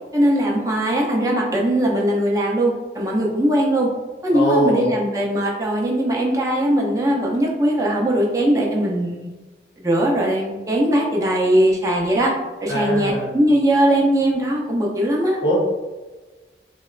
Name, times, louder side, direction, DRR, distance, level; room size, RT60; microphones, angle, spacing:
voice 1, 0.1-3.9 4.2-9.3 9.8-12.3 12.6-15.4, right 1 dB, 20° right, -3 dB, 0.5 m, -20 dB
voice 2, 4.3-4.9 12.7-13.3 15.4-15.6, equal, 80° left, -4 dB, 0.8 m, -21 dB
3.9 x 2.1 x 2.3 m, 1.2 s
head